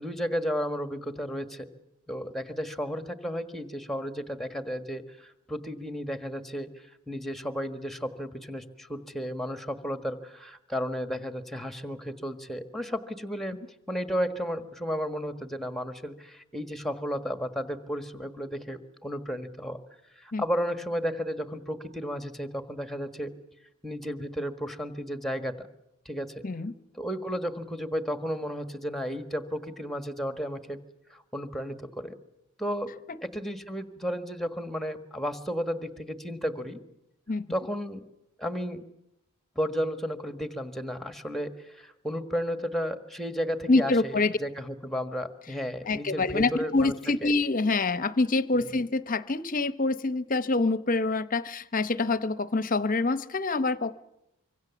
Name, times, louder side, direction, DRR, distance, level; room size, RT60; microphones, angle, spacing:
voice 1, 0.0-1.7 2.1-13.6 13.9-19.8 20.2-23.3 23.8-25.7 26.0-26.3 26.9-30.8 31.1-32.1 32.6-32.9 33.2-36.8 37.5-38.0 38.4-38.8 39.5-46.9 47.2-47.3 48.5-48.7, equal, ahead, 8 dB, 1.4 m, -33 dB
voice 2, 43.7-44.3 45.9-53.9, left 3 dB, 35° left, 14 dB, 0.8 m, -26 dB
25.5 x 24.5 x 7.1 m, 0.86 s
head